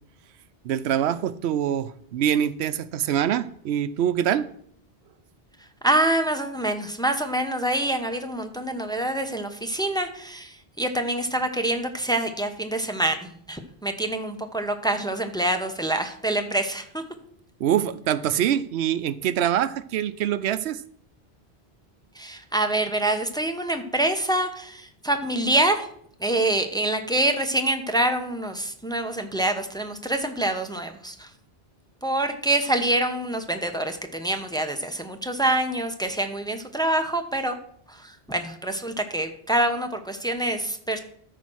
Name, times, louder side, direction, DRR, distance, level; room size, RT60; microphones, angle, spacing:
voice 1, 0.6-4.5 17.6-20.8, right 10 dB, 90° right, 15 dB, 0.9 m, -24 dB
voice 2, 5.8-17.0 22.1-25.9 26.2-31.3 32.0-37.5 37.9-41.0, right 1 dB, 5° left, 6 dB, 0.9 m, -26 dB
13.5 x 4.5 x 6.2 m, 0.62 s
omnidirectional pair, 1.1 m